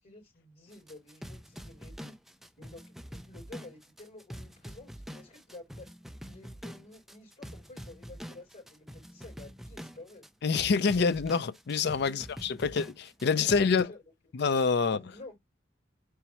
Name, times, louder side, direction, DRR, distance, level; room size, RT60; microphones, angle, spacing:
voice 1, 0.0-2.2 2.6-5.9 6.2-10.3 13.2-14.0 14.8-15.4, left 2 dB, 40° left, 3.6 m, -51 dB
sound 1, 0.7-13.8, equal, ahead, 0.4 m, -45 dB
voice 2, 10.4-13.9 14.3-15.0, left 5 dB, 60° left, 0.5 m, -26 dB
4.2 x 3.5 x 3.0 m
head